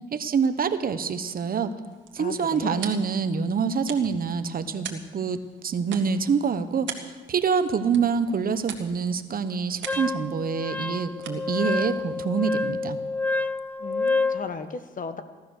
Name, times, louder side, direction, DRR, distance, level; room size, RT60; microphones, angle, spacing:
voice 1, 0.1-1.7 2.1-13.0, right 6 dB, 45° right, 11 dB, 1.0 m, -26 dB
sound 1, 1.7-13.0, right 7 dB, 70° right, 1.8 m, -44 dB
voice 2, 2.2-2.9 13.8-15.2, left 4 dB, 40° left, 10 dB, 1.3 m, -36 dB
Wind instrument woodwind instrument, 9.9-14.4, left 3 dB, 10° left, 0.6 m, -28 dB
16.5 x 12.5 x 6.5 m, 1.3 s
cardioid pair, 90°, 20 cm